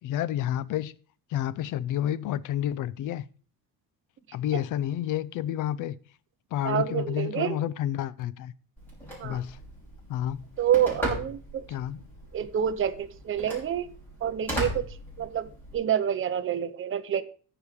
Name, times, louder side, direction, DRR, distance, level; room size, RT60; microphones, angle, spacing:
voice 1, 0.0-0.9 1.3-3.3 4.3-6.0 6.5-8.5 9.2-9.6 10.1-10.5 11.7-12.0, left 11 dB, 55° left, 0.6 m, -30 dB
voice 2, 6.6-7.6 9.2-9.4 10.6-11.6 12.3-13.9 14.2-14.9 15.2-15.5 15.7-17.2, right 9 dB, 35° right, 0.7 m, -27 dB
Telephone, 8.8-15.7, equal, 5° left, 5.2 m, -37 dB
14.5 x 5.0 x 5.0 m
cardioid pair, 160°, 38 cm